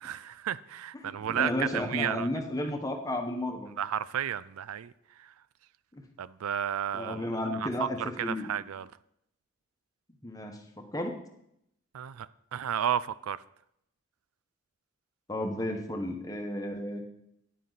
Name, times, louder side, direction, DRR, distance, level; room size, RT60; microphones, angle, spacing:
voice 1, 0.0-2.3 3.8-4.9 5.2-5.3 6.2-7.3 7.6-8.9 11.9-13.4, right 9 dB, 90° right, 0.4 m, -32 dB
voice 2, 1.0-3.7 6.9-8.5 10.2-11.1 15.3-17.0, left 1 dB, 15° left, 1.0 m, -33 dB
10.5 x 9.4 x 4.0 m
head